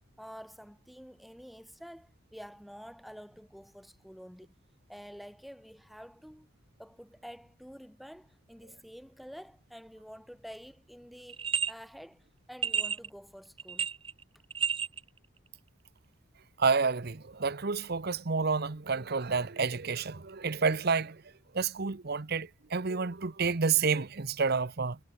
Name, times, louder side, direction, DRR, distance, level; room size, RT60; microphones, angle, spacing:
voice 1, 0.0-4.6 4.9-6.5 6.8-13.9, equal, ahead, 7.6 m, -49 dB
sound 1, 11.3-11.7 12.6-13.1 13.6-14.2 14.5-15.0, right 7 dB, 25° right, 1.3 m, -30 dB
voice 2, 16.6-21.2 21.5-25.0, right 5 dB, 50° right, 0.8 m, -29 dB
head